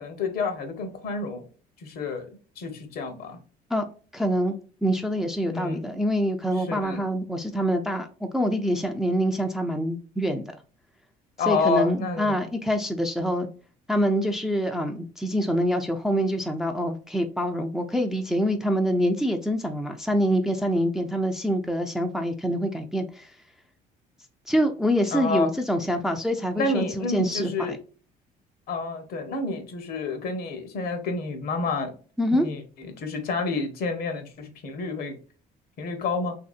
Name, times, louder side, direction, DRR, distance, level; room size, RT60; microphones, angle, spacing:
voice 1, 0.0-1.4 1.8-2.3 2.6-3.4 5.5-5.8 6.6-7.0 11.4-12.3 25.1-25.5 26.6-27.8 28.7-31.9 32.3-35.1 35.8-36.4, left 3 dB, 65° left, 0.8 m, -29 dB
voice 2, 4.1-8.1 8.3-10.5 11.5-13.5 13.9-23.3 24.5-27.8 32.2-32.5, equal, 5° right, 0.4 m, -25 dB
2.9 x 2.7 x 2.4 m
cardioid pair, 110°, 17 cm